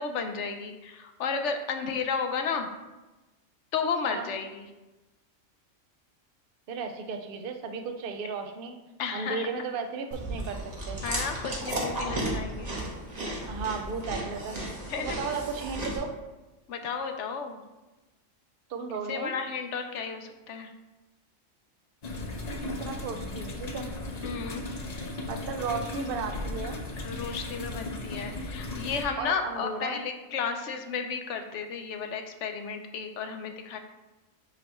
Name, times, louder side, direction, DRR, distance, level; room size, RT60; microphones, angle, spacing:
voice 1, 0.0-2.7 3.7-4.7 9.0-9.5 11.0-12.7 14.9-15.2 16.7-17.6 19.1-20.7 24.2-24.7 27.0-33.8, left 5 dB, 70° left, 6 dB, 0.9 m, -33 dB
voice 2, 6.7-8.8 9.1-10.6 10.9-11.0 13.5-14.6 15.0-16.1 18.7-19.3 22.8-23.9 25.3-26.8 29.2-30.0, right 5 dB, 55° right, 6 dB, 0.7 m, -34 dB
Chewing mastication, 10.1-16.0, right 1 dB, 35° right, 1.1 m, -34 dB
sound 1, 22.0-29.0, left 2 dB, 40° left, 0.7 m, -36 dB
9.6 x 3.3 x 3.0 m, 1.1 s
omnidirectional pair, 1.3 m